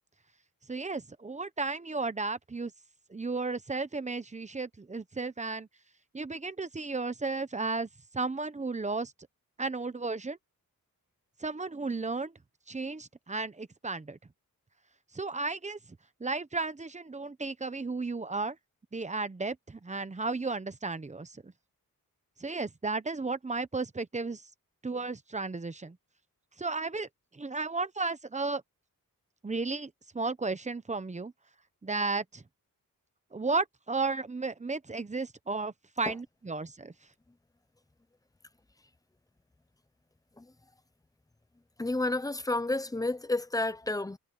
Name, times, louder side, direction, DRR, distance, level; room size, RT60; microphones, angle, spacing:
voice 1, 0.7-2.7 3.1-5.7 6.1-9.1 9.6-10.4 11.4-12.3 12.7-14.2 15.1-15.8 16.2-18.6 18.9-21.5 22.4-24.4 24.8-26.0 26.6-27.1 27.3-28.6 29.4-31.3 31.8-32.4 33.3-36.9, right 3 dB, 20° right, 0.8 m, -34 dB
voice 2, 41.8-44.2, left 2 dB, 10° left, 0.6 m, -30 dB
wide cardioid pair, 160°, 34 cm